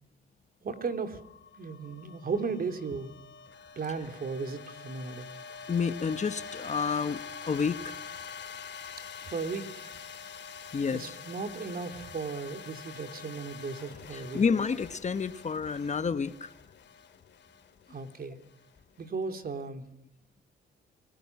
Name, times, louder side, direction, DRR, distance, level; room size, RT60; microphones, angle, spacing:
voice 1, 0.6-1.2 1.6-3.1 3.7-5.3 9.2-9.9 10.9-14.4 17.9-18.4 19.0-19.8, right 4 dB, 50° right, 7 dB, 3.3 m, -36 dB
sound 1, 0.7-19.0, left 6 dB, 65° left, 3.4 m, -46 dB
voice 2, 5.7-8.0 10.7-11.1 14.1-16.5, left 5 dB, 35° left, 12 dB, 1.3 m, -30 dB
29.5 x 19.5 x 6.0 m, 0.74 s
cardioid pair, 90°, 20 cm